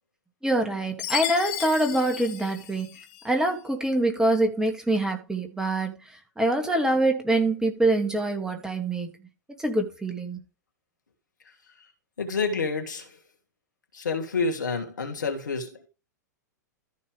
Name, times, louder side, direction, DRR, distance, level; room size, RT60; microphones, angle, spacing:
voice 1, 0.4-3.0 3.2-9.1 9.6-10.4, right 1 dB, 5° right, 2.3 m, -25 dB
Chime, 1.0-3.3, left 12 dB, 45° left, 1.7 m, -34 dB
voice 2, 12.2-13.2 13.9-15.9, left 4 dB, 80° left, 2.7 m, -29 dB
14.0 x 5.4 x 3.5 m
hypercardioid pair, 105°, 10 cm